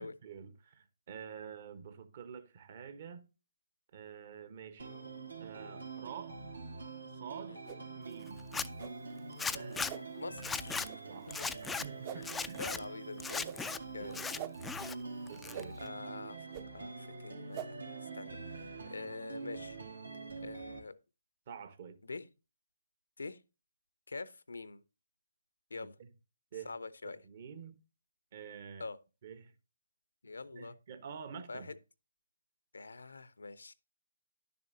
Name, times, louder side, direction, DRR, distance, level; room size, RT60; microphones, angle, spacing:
voice 1, 0.0-3.3 3.9-4.9 5.4-6.4 7.1-7.6 7.9-8.4 9.5-9.8 11.1-12.8 14.0-14.2 15.3-15.8 21.5-22.0 25.7-26.1 26.5-26.7 27.0-27.8 28.3-28.9 29.2-29.5 30.5-31.7, right 7 dB, 45° right, 1.1 m, -48 dB
sound 1, 4.8-20.8, right 4 dB, 85° right, 2.5 m, -45 dB
sound 2, 7.6-7.8 8.8-8.9 9.9-10.0 10.9-11.0 12.0-12.2 13.4-13.6 14.4-14.5 15.5-15.7 16.5-16.6 17.5-17.7, right 10 dB, 25° right, 0.6 m, -42 dB
Zipper (clothing), 8.4-8.7 9.4-9.9 10.4-10.9 11.3-11.8 12.2-12.8 13.2-13.8 14.1-14.9 15.3-15.9, left 5 dB, 5° left, 0.3 m, -37 dB
voice 2, 9.9-11.5 12.2-12.3 12.6-14.2 15.8-16.5 16.7-19.8 20.4-20.9 22.0-22.3 23.2-23.4 24.1-24.8 25.7-26.0 26.6-27.2 28.8-29.0 30.2-30.7 31.5-31.8 32.7-33.7, left 3 dB, 75° left, 0.7 m, -45 dB
10.5 x 6.9 x 2.7 m
figure-of-eight pair, 140°, 0 cm